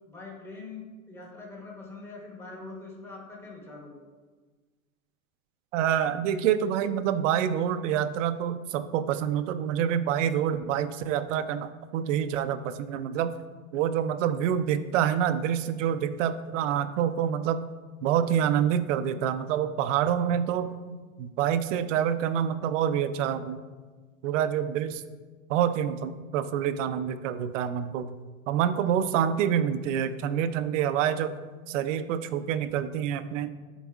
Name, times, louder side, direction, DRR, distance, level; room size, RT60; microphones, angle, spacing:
voice 1, 0.1-4.0 28.7-28.9, left 3 dB, 5° left, -2 dB, 0.9 m, -43 dB
voice 2, 5.7-13.3 13.7-17.6 18.0-20.7 21.2-23.6 24.2-25.0 25.5-28.1 28.5-31.3 31.7-33.5, right 9 dB, 60° right, 12 dB, 0.5 m, -27 dB
11.0 x 4.0 x 2.4 m, 1.4 s
supercardioid pair, 145°, 42 cm